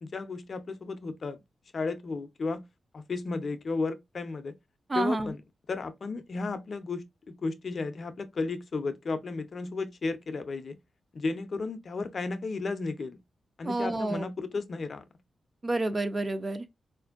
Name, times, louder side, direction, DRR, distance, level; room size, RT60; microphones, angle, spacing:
voice 1, 0.0-1.4 1.7-2.6 2.9-4.5 4.9-5.4 5.7-10.8 11.1-13.2 13.6-15.0, left 3 dB, 45° left, 0.5 m, -34 dB
voice 2, 4.9-5.3 13.6-14.3 15.6-16.7, right 2 dB, 25° right, 0.4 m, -29 dB
4.2 x 2.5 x 2.3 m
wide cardioid pair, 170°, 0 cm